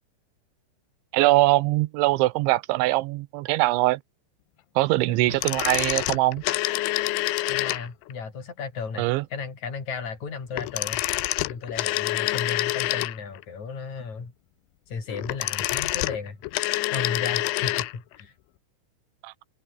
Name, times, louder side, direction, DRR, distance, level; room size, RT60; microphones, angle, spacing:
voice 1, 1.1-4.0 4.8-6.4 9.0-9.2 19.2-19.3, right 20 dB, 85° right, 3.1 m, -22 dB
voice 2, 5.1-5.4 7.5-9.0 9.3-11.0 11.5-14.3 14.9-16.4 16.9-18.3, left 5 dB, 40° left, 6.3 m, -34 dB
sound 1, 5.3-8.1 10.5-13.4 15.1-18.0 18.2-18.3, left 19 dB, 80° left, 3.2 m, -27 dB
omnidirectional pair, 5.4 m